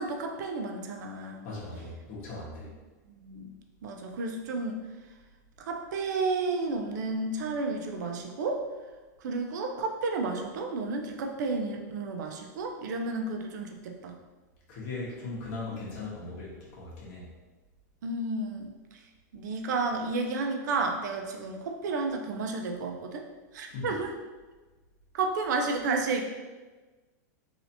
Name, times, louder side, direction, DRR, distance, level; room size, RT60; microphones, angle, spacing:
voice 1, 0.0-1.5 3.2-3.5 3.8-4.8 5.6-8.6 9.2-14.2 15.7-15.8 18.0-18.7 19.3-23.3 23.5-24.1 25.1-26.3, right 3 dB, 75° right, 3 dB, 0.5 m, -32 dB
voice 2, 1.4-2.7 14.7-17.3 23.6-23.9, left 3 dB, 55° left, -6 dB, 1.4 m, -39 dB
3.2 x 2.8 x 2.8 m, 1.3 s
supercardioid pair, 140°, 10 cm